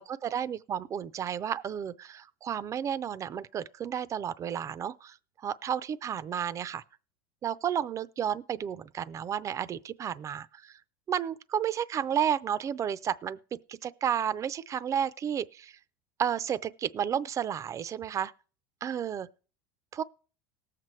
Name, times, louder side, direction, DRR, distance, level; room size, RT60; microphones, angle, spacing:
voice 1, 0.0-5.2 5.4-6.8 7.4-10.7 11.1-15.8 16.2-18.3 18.8-19.3 19.9-20.0, right 9 dB, 25° right, 0.5 m, -32 dB
18.5 x 7.6 x 3.2 m
supercardioid pair, 125°, 11 cm